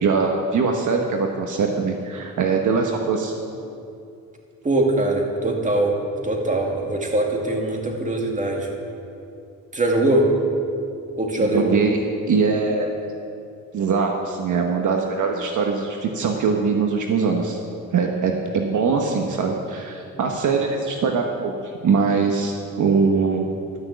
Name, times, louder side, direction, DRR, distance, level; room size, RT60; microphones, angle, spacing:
voice 1, 0.0-3.3 11.4-12.0 12.3-12.9 13.7-17.6 17.9-21.5 21.8-23.5, right 5 dB, 60° right, 2 dB, 1.2 m, -22 dB
voice 2, 4.6-5.9 6.2-8.7 9.7-10.3 11.2-11.7, right 1 dB, 20° right, 0 dB, 2.2 m, -22 dB
12.5 x 6.3 x 7.9 m, 2.6 s
cardioid pair, 90°, 35 cm